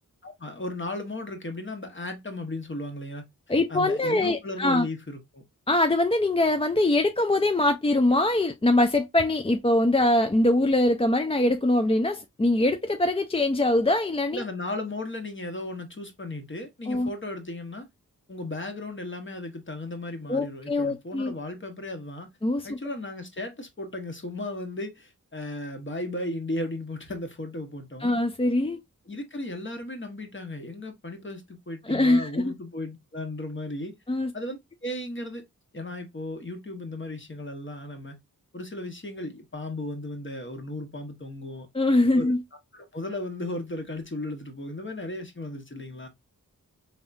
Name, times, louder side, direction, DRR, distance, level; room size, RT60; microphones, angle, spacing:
voice 1, 0.2-3.2 3.7-5.4 14.3-17.9 18.3-22.3 22.6-28.1 29.1-33.9 34.3-35.4 35.7-38.2 38.5-41.7 42.2-42.3 42.7-46.1, left 1 dB, 35° left, 1.2 m, -35 dB
voice 2, 3.5-4.9 5.7-14.4 16.9-17.1 20.3-21.3 22.4-22.8 28.0-28.8 31.9-32.5 34.1-34.3 41.7-42.4, left 1 dB, 15° left, 0.4 m, -23 dB
3.5 x 3.5 x 2.6 m
wide cardioid pair, 55°, 34 cm